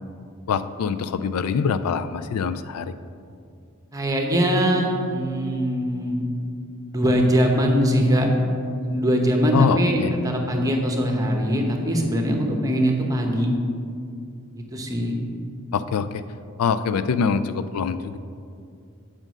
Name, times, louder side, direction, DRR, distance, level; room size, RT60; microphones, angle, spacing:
voice 1, 0.5-2.9 9.5-10.1 15.7-16.2 16.6-18.2, left 6 dB, 85° left, 12 dB, 0.4 m, -24 dB
voice 2, 3.9-6.2 6.9-8.3 8.8-13.5 14.5-15.2, equal, 15° right, 2 dB, 0.9 m, -22 dB
7.5 x 5.2 x 6.2 m, 2.4 s
head